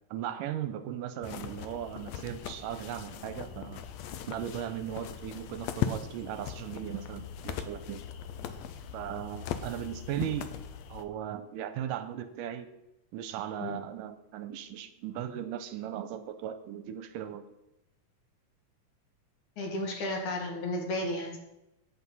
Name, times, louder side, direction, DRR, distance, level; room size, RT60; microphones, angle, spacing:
voice 1, 0.1-3.8 4.3-8.0 8.9-10.5 10.9-12.7 13.1-17.4, right 10 dB, 85° right, 10 dB, 2.2 m, -37 dB
sound 1, 1.2-11.1, left 9 dB, 80° left, 1.5 m, -39 dB
voice 2, 19.6-21.4, left 1 dB, 65° left, 2 dB, 3.0 m, -33 dB
9.8 x 8.4 x 5.4 m, 0.89 s
omnidirectional pair, 3.9 m